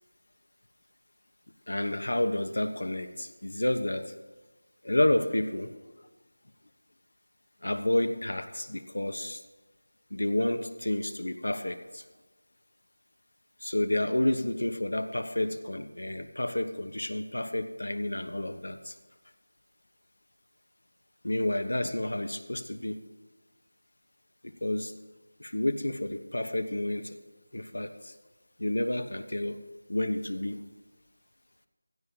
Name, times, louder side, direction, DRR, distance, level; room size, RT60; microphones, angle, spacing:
voice 1, 1.7-4.1 4.8-5.7 7.6-9.4 10.1-12.0 13.6-18.9 21.2-23.0 24.4-24.9 25.4-27.2 27.5-28.1 28.6-30.6, left 1 dB, 80° left, 8 dB, 1.1 m, -30 dB
16.0 x 14.5 x 2.8 m, 1.2 s
figure-of-eight pair, 175°, 0 cm